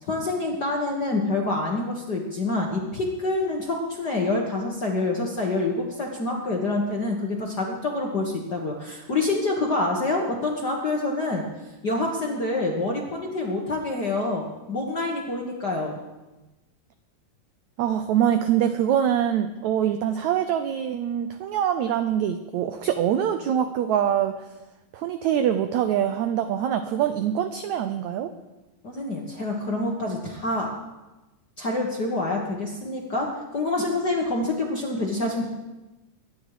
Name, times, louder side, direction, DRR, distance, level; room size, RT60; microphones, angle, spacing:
voice 1, 0.0-11.4 11.8-16.0 28.8-30.7 31.6-35.5, left 2 dB, 45° left, -1 dB, 1.3 m, -27 dB
voice 2, 17.8-24.5 24.9-28.3, right 9 dB, 80° right, 9 dB, 1.6 m, -24 dB
22.0 x 10.5 x 5.0 m, 1.1 s
omnidirectional pair, 4.0 m